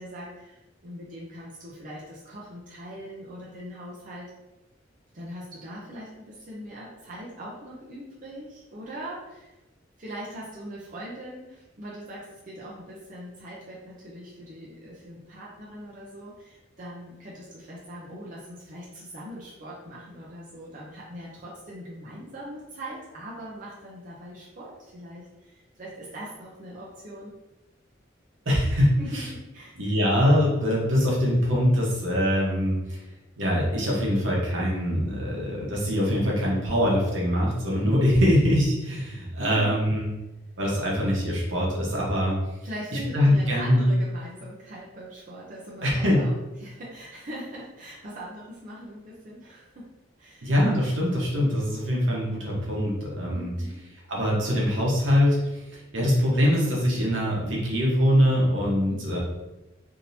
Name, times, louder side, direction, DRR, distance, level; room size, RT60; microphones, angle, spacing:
voice 1, 0.0-4.3 5.1-9.5 10.0-27.3 29.0-29.8 32.9-33.0 39.4-39.8 42.6-46.3 46.6-49.9 50.2-50.5 53.3-53.8 56.2-56.5 58.9-59.2, equal, 45° right, -6 dB, 0.7 m, -41 dB
voice 2, 28.4-29.2 29.8-33.0 33.4-40.1 40.6-42.3 43.1-44.0 45.8-46.2 50.4-53.5 54.1-59.2, equal, 75° right, -4 dB, 1.1 m, -23 dB
3.6 x 2.9 x 2.7 m, 1.0 s
head